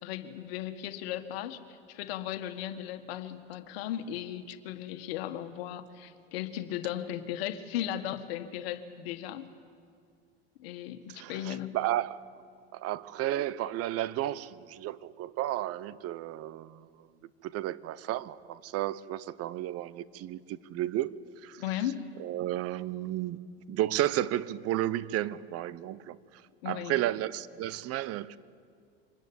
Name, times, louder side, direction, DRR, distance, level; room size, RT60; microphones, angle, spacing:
voice 1, 0.0-9.5 10.6-11.8 21.6-22.1 26.6-27.0, left 11 dB, 70° left, 1.7 m, -36 dB
voice 2, 11.1-12.2 12.7-17.1 17.4-21.6 22.2-28.4, right 13 dB, 50° right, 0.9 m, -33 dB
25.0 x 20.0 x 8.6 m
hypercardioid pair, 85°, 31 cm